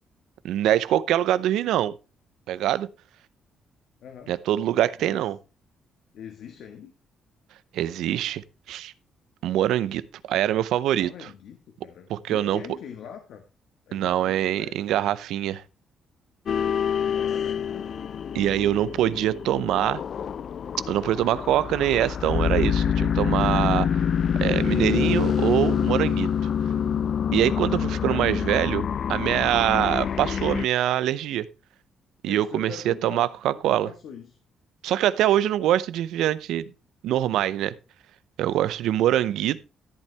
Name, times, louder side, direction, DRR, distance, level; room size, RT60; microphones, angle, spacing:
voice 1, 0.4-1.9 2.5-2.9 4.3-5.4 7.7-8.9 9.4-11.1 12.1-12.6 13.9-15.6 18.3-20.0 20.9-24.0 24.4-26.3 27.3-31.5 32.2-33.9 34.8-36.7 37.0-37.7 38.4-39.6, right 12 dB, 85° right, 0.6 m, -24 dB
voice 2, 4.0-4.3 5.0-5.2 6.1-6.9 10.9-13.4 13.9-15.0 17.0-18.1 28.1-28.2 29.6-29.8 32.2-34.4 38.9-39.1, left 7 dB, 75° left, 1.6 m, -43 dB
sound 1, 16.5-30.6, left 8 dB, 55° left, 0.4 m, -26 dB
13.5 x 8.3 x 3.4 m
cardioid pair, 90°, 0 cm